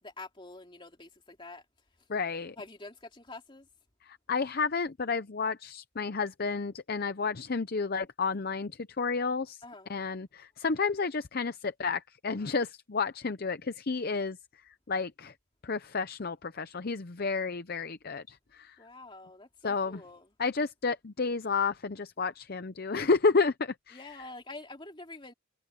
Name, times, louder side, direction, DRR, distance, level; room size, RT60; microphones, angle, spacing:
voice 1, 0.0-1.6 2.6-3.7 9.6-9.9 18.8-20.3 23.9-25.3, left 2 dB, 25° left, 3.0 m, -46 dB
voice 2, 2.1-2.6 4.0-9.6 9.9-14.4 14.6-15.3 15.6-18.8 19.6-20.0 20.4-24.0, left 4 dB, 45° left, 0.6 m, -31 dB
head